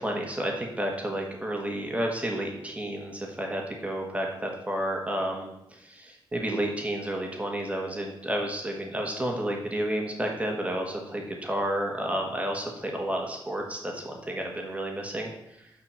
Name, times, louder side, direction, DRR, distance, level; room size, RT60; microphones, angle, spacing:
voice 1, 0.0-5.5 6.3-15.3, right 1 dB, 15° right, 1 dB, 1.4 m, -31 dB
6.0 x 5.8 x 6.8 m, 0.84 s
wide cardioid pair, 130°, 9 cm